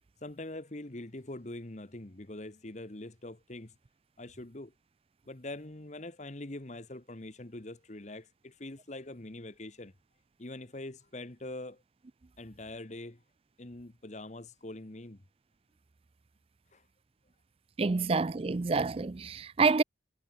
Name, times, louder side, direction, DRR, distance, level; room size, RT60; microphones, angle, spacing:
voice 1, 0.2-3.7 4.2-4.7 5.3-9.9 10.4-11.8 12.4-13.2 13.6-15.2 16.7-16.9, left 2 dB, 40° left, 1.2 m, -43 dB
voice 2, 17.8-19.8, right 4 dB, 30° right, 0.4 m, -27 dB
head